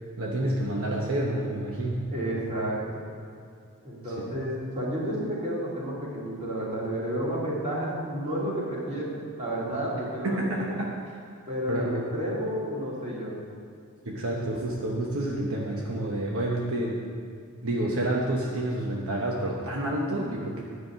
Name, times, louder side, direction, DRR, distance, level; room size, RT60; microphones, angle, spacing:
voice 1, 0.2-2.0 10.2-10.8 11.7-12.0 14.1-17.1 17.6-20.6, right 1 dB, 65° right, -2 dB, 1.0 m, -29 dB
voice 2, 2.1-3.0 3.8-10.7 11.5-13.3, right 1 dB, 30° right, -6 dB, 2.9 m, -31 dB
9.8 x 6.3 x 7.6 m, 2.3 s
head